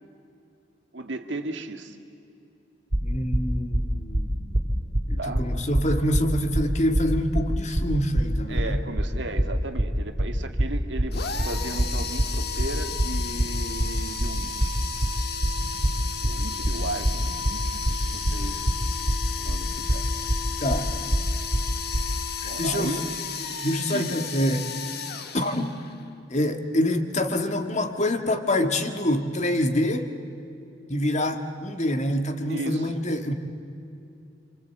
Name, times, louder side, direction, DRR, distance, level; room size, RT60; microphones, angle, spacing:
voice 1, 0.9-2.0 5.2-5.5 8.5-14.7 16.1-18.6 19.4-20.1 20.5-20.6 22.4-23.0 23.9-24.2 32.5-32.9, right 2 dB, 70° right, 6 dB, 1.9 m, -35 dB
sound 1, 2.9-22.1, equal, 45° right, 2.1 m, -25 dB
voice 2, 3.0-4.8 5.0-8.8 20.6-20.9 22.4-23.0 23.6-24.7 25.3-25.9 26.3-30.1 30.9-33.3, left 1 dB, 40° left, 6 dB, 1.8 m, -26 dB
sound 2, 11.1-26.0, left 6 dB, 60° left, 1.6 m, -34 dB
27.5 x 26.0 x 8.4 m, 2.7 s
head